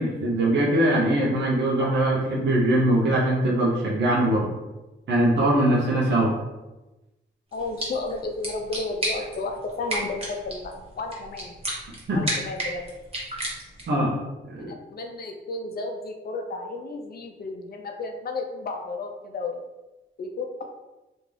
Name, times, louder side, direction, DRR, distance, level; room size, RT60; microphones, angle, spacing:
voice 1, 0.0-4.5 5.1-6.3 12.1-12.2 13.9-14.1 14.5-14.7, right 1 dB, 80° right, -5 dB, 0.7 m, -22 dB
voice 2, 7.5-11.6 12.1-12.9 14.7-19.6 20.2-20.6, left 3 dB, 55° left, 3 dB, 0.5 m, -33 dB
sound 1, 7.5-14.0, right 1 dB, 30° right, 1.0 m, -34 dB
2.5 x 2.3 x 3.2 m, 1.0 s
cardioid pair, 70°, 19 cm